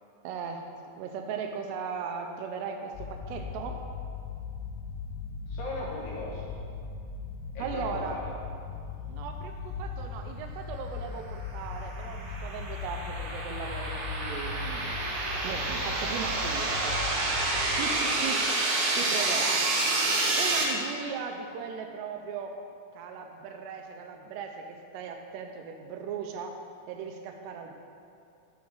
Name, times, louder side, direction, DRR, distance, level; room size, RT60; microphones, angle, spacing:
voice 1, 0.2-0.7 1.0-3.8 7.6-8.2 9.1-14.9 15.4-17.1 17.8-18.4 18.9-19.7 20.4-22.6 23.0-26.5 26.9-27.7, right 6 dB, 80° right, 4 dB, 2.5 m, -37 dB
sound 1, 2.9-17.8, left 5 dB, 85° left, 2.3 m, -38 dB
voice 2, 5.5-6.6 7.5-8.4 17.9-18.2, left 2 dB, 65° left, -5 dB, 2.3 m, -39 dB
sound 2, 11.7-20.6, right 2 dB, 65° right, 2.2 m, -29 dB
7.7 x 4.8 x 7.1 m, 2.4 s
omnidirectional pair, 5.3 m